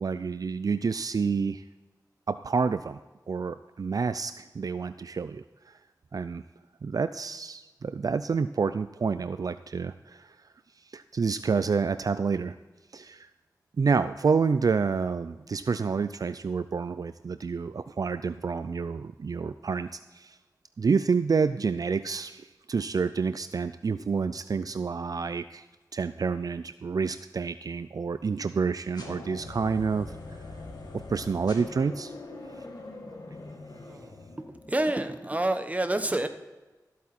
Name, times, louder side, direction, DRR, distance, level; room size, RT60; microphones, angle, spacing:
voice 1, 0.0-1.6 2.3-3.0 3.3-5.7 6.1-6.4 6.8-10.3 10.9-12.5 12.9-13.3 13.8-20.4 20.8-25.6 25.9-30.4 30.9-32.1, right 5 dB, 60° right, 12 dB, 0.4 m, -28 dB
sound 1, 28.9-34.9, left 2 dB, 75° left, 2.0 m, -42 dB
voice 2, 34.7-36.3, right 1 dB, 20° right, 8 dB, 1.1 m, -28 dB
14.0 x 8.3 x 4.3 m, 1.2 s
wide cardioid pair, 60°, 7 cm